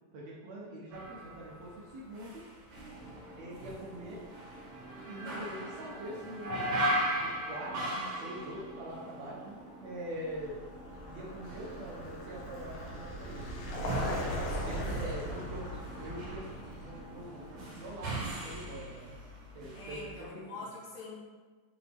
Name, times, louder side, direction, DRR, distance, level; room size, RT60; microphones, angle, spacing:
voice 1, 0.1-2.4 3.4-4.2 5.1-6.8 7.2-10.6 11.1-13.5 13.8-14.1 14.6-15.6 16.0-19.1 19.5-20.7, right 1 dB, 75° right, -5 dB, 1.5 m, -44 dB
sound 1, 0.9-9.8 10.1-20.3, right 1 dB, 45° right, 2.3 m, -39 dB
sound 2, 2.7-17.7, equal, 30° left, 1.7 m, -51 dB
Vehicle, 10.3-19.1, equal, 65° left, 2.0 m, -40 dB
voice 2, 13.8-14.3 14.6-15.1 19.7-21.1, left 2 dB, 85° left, -5 dB, 3.4 m, -45 dB
6.2 x 4.7 x 3.5 m, 1.4 s
omnidirectional pair, 4.2 m